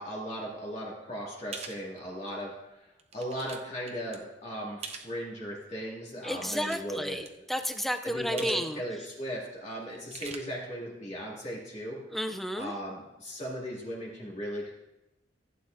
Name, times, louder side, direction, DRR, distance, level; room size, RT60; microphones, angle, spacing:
voice 1, 0.0-2.9 3.1-7.2 8.0-12.0 12.5-14.7, equal, 35° left, -4 dB, 2.2 m, -37 dB
sound 1, 1.5-1.8 2.4-2.5 3.0-3.6 3.9-4.2 4.8-5.1 6.3-7.0 7.2-7.3 8.4-8.7 8.9-9.0 9.9-10.4, right 5 dB, 35° right, 0.7 m, -42 dB
voice 2, 6.2-8.8 12.1-12.7, equal, ahead, 7 dB, 0.4 m, -32 dB
15.5 x 8.7 x 2.6 m, 0.96 s
head